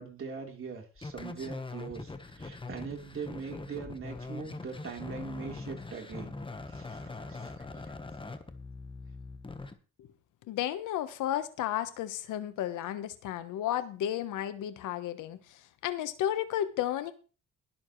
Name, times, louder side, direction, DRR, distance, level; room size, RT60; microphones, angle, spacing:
voice 1, 0.0-6.3 6.7-7.9, right 5 dB, 45° right, 1 dB, 3.7 m, -42 dB
sound 1, 1.0-9.7, left 3 dB, 15° left, 1.2 m, -42 dB
voice 2, 10.5-17.1, left 11 dB, 85° left, 12 dB, 1.1 m, -33 dB
21.0 x 7.3 x 3.2 m, 0.36 s
cardioid pair, 90°, 30 cm